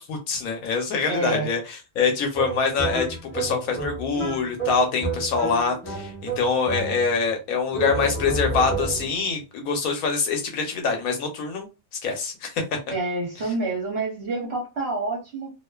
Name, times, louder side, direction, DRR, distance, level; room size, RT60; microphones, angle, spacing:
voice 1, 0.0-3.0 3.3-11.7 12.0-12.6, left 5 dB, 70° left, 1.1 m, -25 dB
voice 2, 1.1-1.5 12.9-15.5, right 3 dB, 55° right, 0.8 m, -28 dB
sound 1, 2.3-7.3 7.7-9.2, right 3 dB, 15° left, 0.4 m, -31 dB
2.4 x 2.4 x 2.2 m
omnidirectional pair, 1.6 m